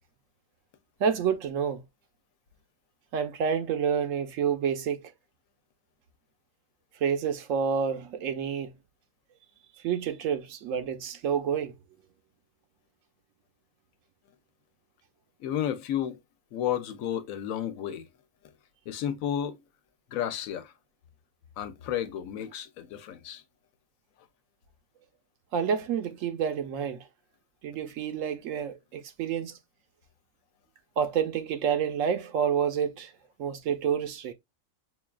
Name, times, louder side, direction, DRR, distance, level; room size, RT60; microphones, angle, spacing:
voice 1, 1.0-1.8 3.1-5.0 7.0-8.7 9.8-11.7 25.5-27.0 27.6-29.6 31.0-33.1 33.4-34.3, right 7 dB, 75° right, 1.1 m, -28 dB
voice 2, 15.4-16.2 16.5-18.0 18.9-19.6 20.1-20.7 21.6-23.4, left 10 dB, 85° left, 1.0 m, -32 dB
5.9 x 2.3 x 2.3 m
omnidirectional pair, 1.4 m